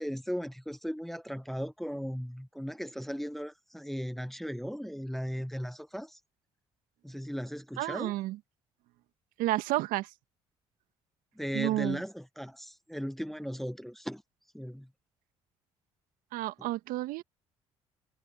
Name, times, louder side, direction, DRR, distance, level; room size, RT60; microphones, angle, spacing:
voice 1, 0.0-6.2 7.0-8.1 11.4-14.2 14.5-14.9 16.6-16.7, equal, ahead, 0.9 m, -37 dB
voice 2, 7.8-8.4 9.4-10.1 11.5-12.0 16.3-17.2, right 17 dB, 70° right, 1.6 m, -31 dB
hypercardioid pair, 55°, 15 cm